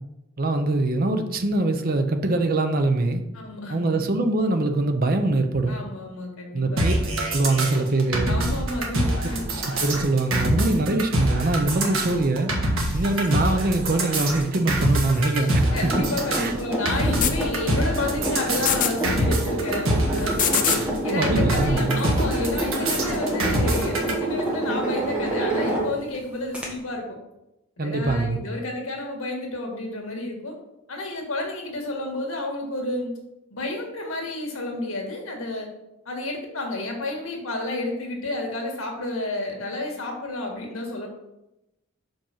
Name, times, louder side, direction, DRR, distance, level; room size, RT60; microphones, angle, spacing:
voice 1, 0.4-3.2 3.7-5.8 6.5-6.9 7.3-8.4 9.8-12.5 12.9-15.7 16.4-16.5 21.1-22.0 27.8-28.4, right 2 dB, 45° right, 6 dB, 0.7 m, -23 dB
voice 2, 3.3-4.0 5.7-6.8 8.3-9.6 10.5-10.9 15.7-20.6 21.0-27.2 27.8-30.5 30.9-33.1 33.5-35.7 36.0-41.1, left 2 dB, 80° left, 1 dB, 1.7 m, -31 dB
sound 1, 6.8-24.1, right 1 dB, 75° right, 1.4 m, -25 dB
sound 2, 12.8-13.5 14.8-15.6 16.9-17.4 18.5-19.0 20.2-20.9 22.0-22.1, left 9 dB, 40° left, 0.6 m, -28 dB
sound 3, 15.7-26.2 26.5-26.7, right 1 dB, 5° right, 1.5 m, -28 dB
5.3 x 5.2 x 5.7 m, 0.92 s
head